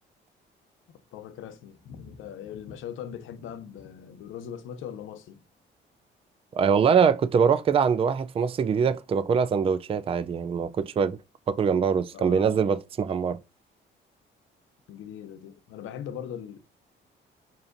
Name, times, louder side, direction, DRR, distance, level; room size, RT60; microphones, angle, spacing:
voice 1, 1.1-5.4 12.1-12.7 14.9-16.6, left 9 dB, 80° left, 0.6 m, -40 dB
voice 2, 6.5-11.2 11.5-13.4, right 6 dB, 30° right, 0.3 m, -23 dB
5.7 x 2.5 x 2.5 m
cardioid pair, 90°, 20 cm